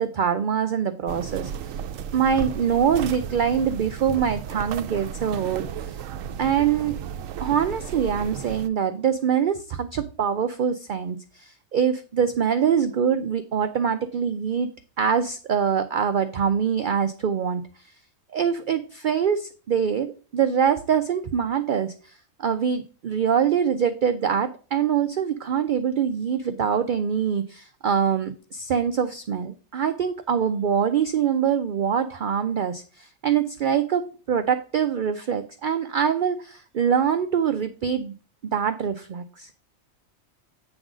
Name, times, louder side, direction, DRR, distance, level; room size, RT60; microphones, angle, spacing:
voice 1, 0.0-1.5 2.1-6.0 6.4-7.0 7.4-14.7 15.0-17.6 18.3-22.1 22.4-38.1 38.5-39.5, right 7 dB, 60° right, 9 dB, 0.5 m, -24 dB
sound 1, 1.1-8.7, right 8 dB, 80° right, 1.0 m, -34 dB
8.8 x 3.8 x 6.0 m, 0.38 s
omnidirectional pair, 1.4 m